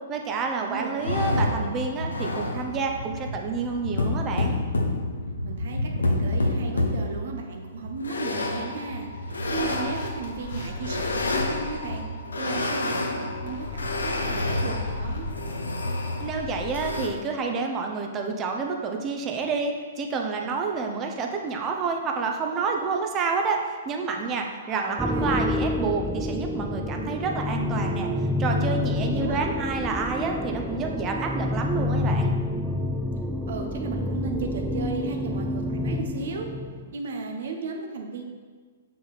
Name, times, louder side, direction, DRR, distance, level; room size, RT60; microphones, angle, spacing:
voice 1, 0.1-4.6 16.2-28.1 28.4-32.3, right 4 dB, 25° right, 2 dB, 0.9 m, -29 dB
voice 2, 0.6-1.6 5.4-12.0 12.4-15.3 24.6-25.6 28.9-29.5 33.5-36.5 36.9-38.2, right 4 dB, 60° right, 3 dB, 1.0 m, -35 dB
sound 1, 1.0-17.1, left 2 dB, 80° left, 0.9 m, -29 dB
sound 2, 9.4-11.8 12.5-12.9 13.5-15.5 16.2-16.8, left 5 dB, 60° left, 1.0 m, -40 dB
sound 3, 25.0-36.9, left 2 dB, ahead, 0.4 m, -28 dB
6.6 x 5.9 x 4.1 m, 1.5 s
figure-of-eight pair, 115°, 0 cm